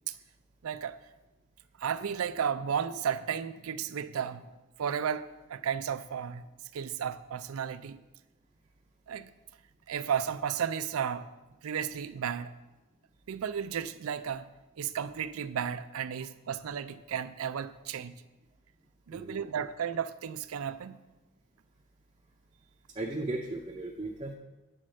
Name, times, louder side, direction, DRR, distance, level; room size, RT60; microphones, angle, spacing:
voice 1, 0.6-1.0 1.8-4.5 4.8-6.5 6.7-8.0 9.1-9.3 9.9-11.3 11.6-12.5 13.3-14.5 14.8-18.1 19.1-21.0, right 8 dB, 85° right, 0.4 m, -33 dB
voice 2, 22.9-24.3, right 2 dB, 25° right, 0.6 m, -36 dB
8.6 x 4.4 x 6.3 m
head